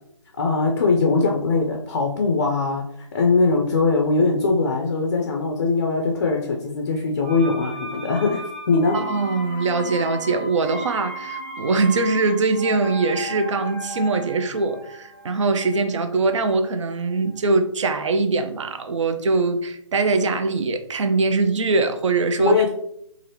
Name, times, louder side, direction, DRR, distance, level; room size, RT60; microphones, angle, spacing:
voice 1, 0.4-2.8 3.1-9.0 22.4-22.7, left 3 dB, 35° left, 0.4 m, -21 dB
sound 1, 7.2-17.0 17.3-17.4, equal, 35° right, 0.9 m, -36 dB
voice 2, 8.9-22.7, right 3 dB, 65° right, 0.5 m, -22 dB
2.7 x 2.4 x 3.2 m
hypercardioid pair, 160°, 17 cm